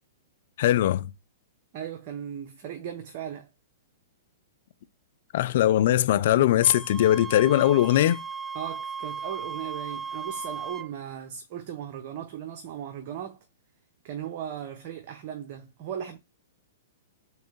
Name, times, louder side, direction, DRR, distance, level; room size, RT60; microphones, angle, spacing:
voice 1, 0.6-1.1 5.3-8.2, left 12 dB, 60° left, 0.4 m, -21 dB
voice 2, 1.7-3.5 8.5-13.4 14.0-16.2, right 9 dB, 50° right, 0.7 m, -37 dB
Wind instrument woodwind instrument, 6.6-10.9, right 6 dB, 15° right, 0.3 m, -37 dB
3.6 x 3.2 x 4.5 m
hypercardioid pair, 115°, 0 cm